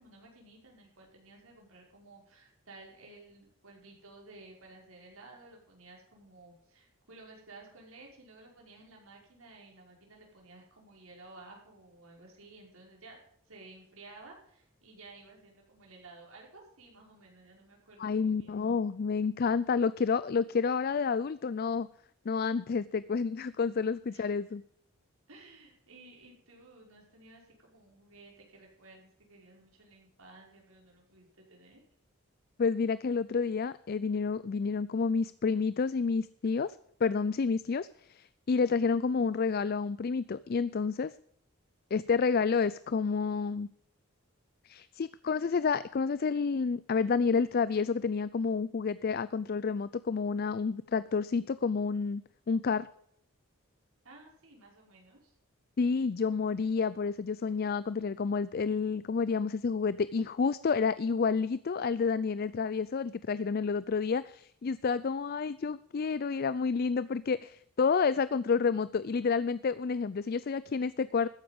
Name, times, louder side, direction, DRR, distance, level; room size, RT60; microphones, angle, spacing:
voice 1, 0.0-13.2 13.5-18.6 24.1-24.3 25.3-31.8 54.0-55.4, right 2 dB, 75° right, -1 dB, 5.4 m, -54 dB
voice 2, 18.0-21.9 22.3-24.6 32.6-36.8 37.0-41.1 41.9-43.7 44.7-52.2 52.5-52.9 55.8-71.3, left 5 dB, 45° left, 17 dB, 0.4 m, -29 dB
14.0 x 10.0 x 5.3 m, 0.66 s
head